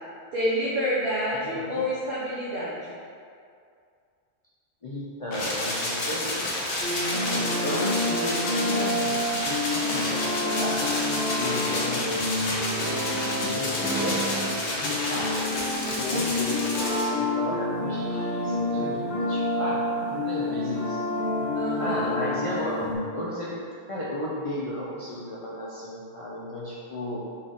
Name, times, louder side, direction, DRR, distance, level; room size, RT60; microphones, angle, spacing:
voice 1, 0.3-2.9 13.9-14.1 21.5-22.1, equal, 55° right, -8 dB, 0.9 m, -28 dB
voice 2, 1.3-1.8 4.8-6.5 7.1-9.1 9.6-13.0 13.4-14.4 14.7-15.4 15.9-19.8 20.3-21.0 21.8-23.6 23.9-27.2, left 1 dB, 45° left, -7 dB, 0.5 m, -34 dB
sound 1, 5.3-17.0, left 1 dB, 90° left, 1.2 m, -30 dB
sound 2, 6.8-23.0, left 2 dB, 60° left, 2.0 m, -29 dB
4.1 x 3.4 x 3.7 m, 2.3 s
omnidirectional pair, 1.1 m